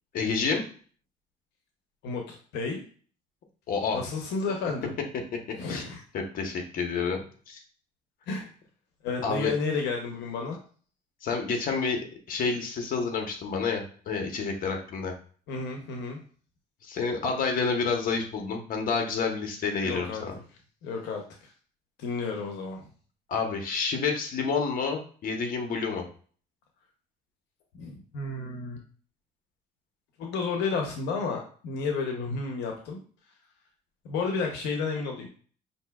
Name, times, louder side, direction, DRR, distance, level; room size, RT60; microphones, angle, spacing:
voice 1, 0.1-0.6 3.7-4.0 5.7-5.8 6.1-7.6 9.2-9.5 11.2-12.0 12.3-15.1 16.8-20.4 23.3-26.0, left 5 dB, 55° left, 3 dB, 1.0 m, -29 dB
voice 2, 2.0-2.8 3.9-4.9 5.6-6.0 8.3-8.5 9.0-10.6 15.5-16.2 19.8-20.2 20.8-21.5 22.0-22.9 27.7-28.8 30.2-33.0 34.0-35.3, left 4 dB, 90° left, 2 dB, 0.8 m, -31 dB
5.4 x 2.7 x 2.3 m, 0.43 s
cardioid pair, 110°, 17 cm